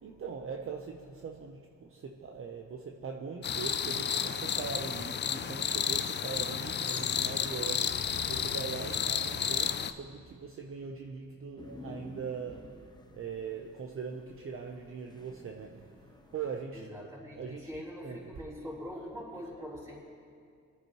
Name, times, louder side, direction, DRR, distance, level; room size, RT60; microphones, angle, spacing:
voice 1, 0.0-17.1 17.3-18.3, right 5 dB, 45° right, 0.9 m, -41 dB
sound 1, 3.4-9.9, left 7 dB, 35° left, 0.5 m, -32 dB
sound 2, 11.6-16.6, left 2 dB, 15° left, 1.0 m, -51 dB
voice 2, 16.7-20.0, equal, 10° right, 3.9 m, -43 dB
24.0 x 9.2 x 3.1 m
cardioid pair, 90°, 30 cm